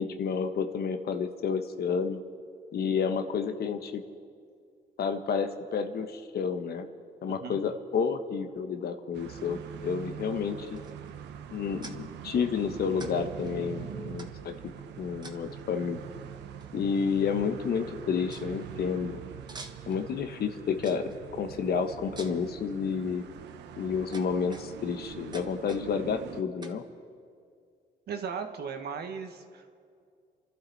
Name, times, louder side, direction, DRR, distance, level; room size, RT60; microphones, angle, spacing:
voice 1, 0.0-2.2 2.7-4.0 5.0-6.9 7.2-10.8 11.5-14.5 15.0-16.0 16.7-19.2 19.9-23.3 23.8-26.8, left 6 dB, 60° left, 7 dB, 1.2 m, -30 dB
voice 2, 7.3-7.6 28.1-29.7, right 6 dB, 65° right, 6 dB, 1.5 m, -37 dB
sound 1, 9.1-26.4, right 9 dB, 80° right, 0.9 m, -43 dB
sound 2, 10.8-11.1 11.8-12.0 13.0-13.1 13.4-13.5 14.2-14.6 15.2-15.6 16.6-16.7 17.0-17.4 17.7-17.8 18.3-18.5 19.5-20.0 20.8-21.2 22.2-22.5 23.2-23.5 24.1-24.9 25.3-25.9 26.6-26.8, right 3 dB, 25° right, 1.3 m, -46 dB
28.0 x 12.0 x 4.2 m, 2.3 s
cardioid pair, 85°, 18 cm